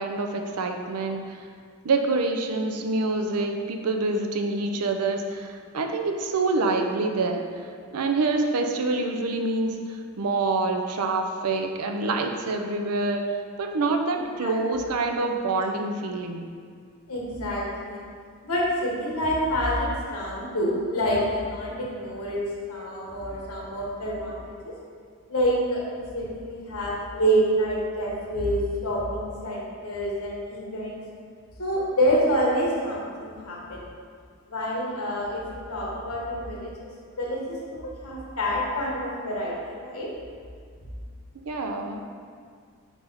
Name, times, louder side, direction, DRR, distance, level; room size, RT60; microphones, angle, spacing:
voice 1, 0.0-1.4 1.8-7.5 7.9-9.8 10.2-13.2 13.6-16.5 41.3-42.0, right 3 dB, 90° right, 4 dB, 0.5 m, -26 dB
voice 2, 17.1-18.0 18.4-22.4 22.7-24.7 25.3-31.0 31.6-33.8 34.5-36.7 37.2-37.6 37.8-40.1, equal, 75° left, -4 dB, 1.1 m, -27 dB
4.5 x 4.0 x 5.5 m, 2.1 s
head